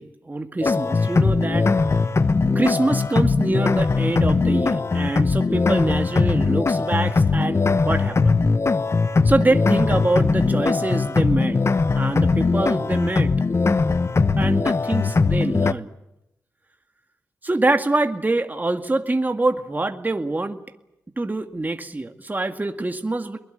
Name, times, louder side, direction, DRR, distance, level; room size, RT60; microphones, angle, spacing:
voice 1, 0.0-1.7 2.6-8.4 9.2-11.6 12.0-13.3 14.4-15.9 17.4-20.6 21.2-23.4, right 2 dB, 25° right, 6 dB, 2.1 m, -25 dB
sound 1, 0.6-15.7, left 4 dB, 45° left, 1.1 m, -20 dB
22.0 x 21.5 x 9.1 m, 0.89 s
cardioid pair, 60°, 7 cm